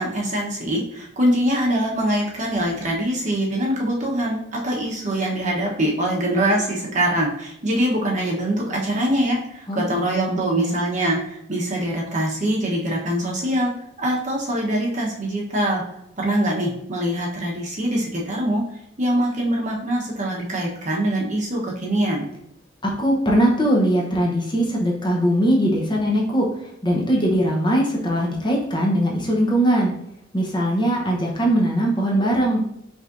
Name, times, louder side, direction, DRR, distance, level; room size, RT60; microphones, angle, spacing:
voice 1, 0.0-13.7 14.0-15.8 16.2-18.6 19.0-22.3, right 1 dB, 40° right, -2 dB, 1.0 m, -23 dB
voice 2, 9.7-10.0 10.3-10.8 22.8-29.9 30.3-32.6, equal, 25° left, -2 dB, 0.9 m, -21 dB
5.3 x 3.3 x 2.6 m, 0.77 s
head